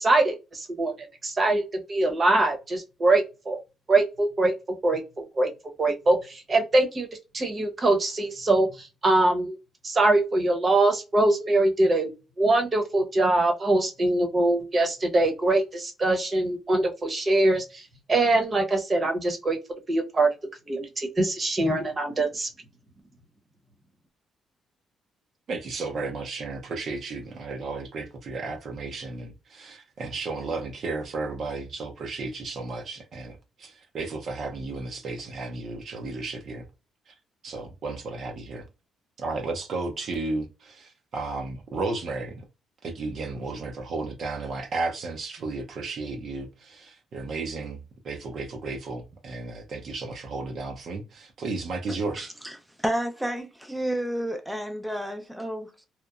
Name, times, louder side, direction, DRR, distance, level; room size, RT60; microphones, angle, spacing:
voice 1, 0.0-1.6 1.9-3.6 3.9-4.5 4.8-5.5 5.8-7.1 7.3-9.6 9.8-12.1 12.4-19.6 19.9-20.3 20.7-22.5, right 2 dB, 35° right, 0.8 m, -23 dB
voice 2, 25.5-36.6 37.1-37.2 37.4-38.7 39.2-42.4 42.8-52.3, right 3 dB, 60° right, 0.5 m, -33 dB
voice 3, 51.9-55.7, right 1 dB, 5° right, 0.4 m, -31 dB
2.9 x 2.0 x 2.3 m
cardioid pair, 90°, 0 cm